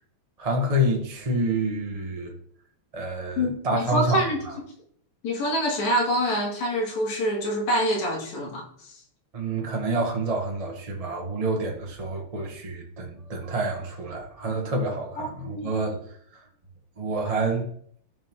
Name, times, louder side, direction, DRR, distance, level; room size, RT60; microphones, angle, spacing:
voice 1, 0.4-2.3 2.9-4.5 9.3-16.0 16.3-16.4 17.0-17.7, right 1 dB, 30° right, 0 dB, 0.6 m, -28 dB
voice 2, 3.4-4.4 5.2-8.9 15.2-15.7, equal, 70° left, -2 dB, 3.5 m, -26 dB
13.5 x 5.4 x 3.7 m, 0.63 s
omnidirectional pair, 3.3 m